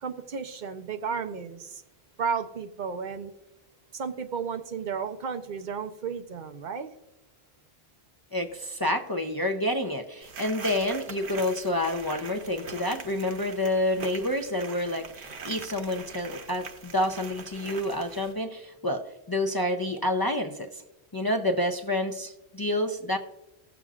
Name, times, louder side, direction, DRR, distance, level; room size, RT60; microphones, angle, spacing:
voice 1, 0.0-1.8 2.2-3.3 3.9-6.9, right 6 dB, 50° right, 8 dB, 0.7 m, -33 dB
voice 2, 8.3-20.8 21.1-23.2, left 1 dB, 30° left, 4 dB, 0.4 m, -28 dB
sound 1, 10.2-18.3, right 5 dB, 90° right, 1.2 m, -42 dB
16.5 x 7.0 x 2.4 m, 0.98 s
omnidirectional pair, 1.1 m